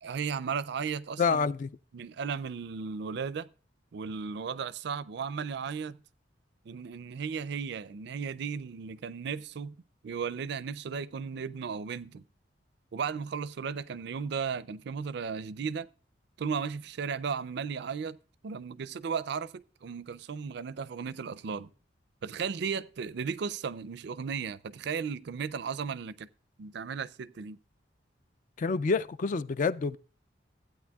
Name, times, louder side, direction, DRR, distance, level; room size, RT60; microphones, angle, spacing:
voice 1, 0.0-1.5 1.9-3.5 3.9-6.0 6.7-9.7 10.0-12.2 12.9-15.9 16.4-18.2 18.4-21.7 22.2-26.3 26.6-27.6, right 6 dB, 65° right, 0.4 m, -35 dB
voice 2, 1.2-1.7 28.6-30.0, left 5 dB, 45° left, 0.3 m, -27 dB
15.0 x 8.9 x 2.3 m
head